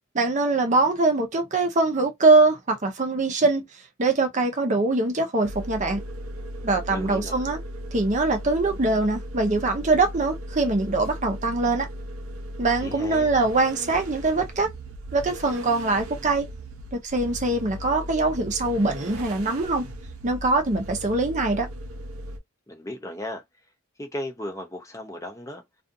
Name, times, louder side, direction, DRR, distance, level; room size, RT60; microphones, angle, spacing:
voice 1, 0.1-3.7 4.0-6.0 6.6-7.6 7.9-11.9 12.6-14.7 15.1-16.5 16.9-19.9 20.2-21.7, right 3 dB, 35° right, 0.6 m, -23 dB
sound 1, 5.4-22.4, equal, 90° right, 0.7 m, -37 dB
voice 2, 6.9-7.4 12.8-13.3 22.7-23.4 24.0-25.6, left 1 dB, 15° left, 0.6 m, -35 dB
2.4 x 2.4 x 2.6 m
head